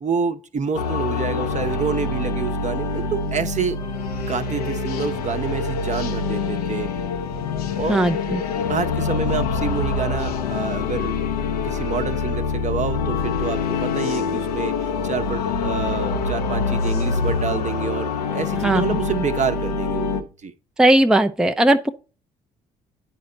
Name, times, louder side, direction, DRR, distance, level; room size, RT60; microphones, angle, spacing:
voice 1, 0.0-3.8 4.3-6.9 7.8-8.1 8.7-11.2 11.6-20.5, right 5 dB, 40° right, 0.9 m, -28 dB
sound 1, 0.7-20.2, left 4 dB, 90° left, 0.6 m, -25 dB
voice 2, 7.9-8.4 18.6-18.8 20.8-21.9, right 1 dB, 5° right, 0.5 m, -17 dB
9.4 x 4.3 x 3.9 m
hypercardioid pair, 50°, 19 cm